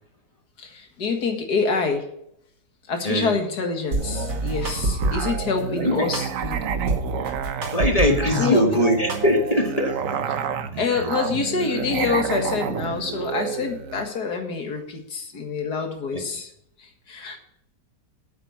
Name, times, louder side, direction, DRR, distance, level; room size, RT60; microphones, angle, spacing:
voice 1, 0.6-2.0 2.9-6.6 8.2-8.8 10.7-16.5 16.8-17.4, left 4 dB, 70° left, 4 dB, 2.3 m, -26 dB
sound 1, 3.9-5.5 6.1-8.4 8.7-9.7, right 3 dB, 90° right, 2.7 m, -27 dB
Musical instrument, 4.0-14.1, right 7 dB, 60° right, 1.1 m, -30 dB
voice 2, 5.8-6.1 7.7-10.3 10.8-10.9 16.1-16.2, left 1 dB, 25° left, 4 dB, 1.4 m, -22 dB
9.1 x 8.1 x 7.1 m, 0.75 s
omnidirectional pair, 1.8 m